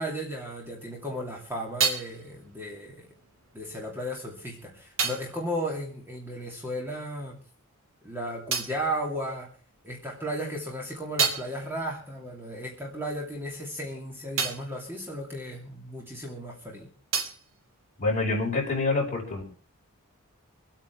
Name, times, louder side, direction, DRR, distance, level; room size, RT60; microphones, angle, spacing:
voice 1, 0.0-3.1 3.5-7.4 8.0-9.5 9.8-16.9, equal, 10° right, -1 dB, 2.6 m, -35 dB
sound 1, 1.0-7.0 7.2-9.9 10.3-16.4 16.6-18.7, right 5 dB, 65° right, 2.7 m, -35 dB
voice 2, 18.0-19.4, left 3 dB, 35° left, -1 dB, 5.3 m, -26 dB
24.0 x 9.0 x 4.6 m, 0.37 s
head